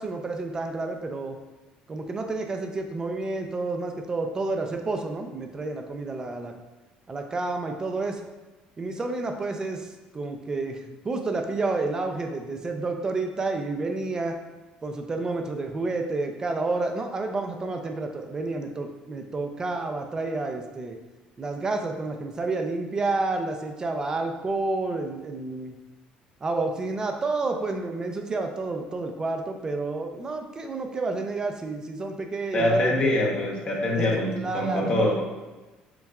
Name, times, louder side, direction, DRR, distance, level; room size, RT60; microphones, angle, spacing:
voice 1, 0.0-1.4 1.9-6.5 7.1-8.2 8.8-14.4 14.8-21.0 21.4-25.8 26.4-33.2 33.9-34.9, right 3 dB, 25° right, 4 dB, 0.5 m, -30 dB
voice 2, 32.5-35.2, left 1 dB, 40° left, -2 dB, 0.9 m, -24 dB
6.9 x 2.3 x 2.3 m, 1.2 s
cardioid pair, 125°, 3 cm